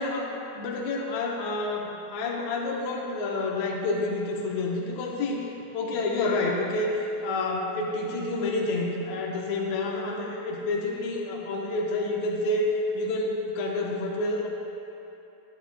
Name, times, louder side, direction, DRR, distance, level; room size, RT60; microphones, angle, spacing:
voice 1, 0.0-12.7 13.0-14.5, left 2 dB, 75° left, -2 dB, 2.0 m, -29 dB
10.5 x 9.7 x 2.3 m, 2.8 s
omnidirectional pair, 3.3 m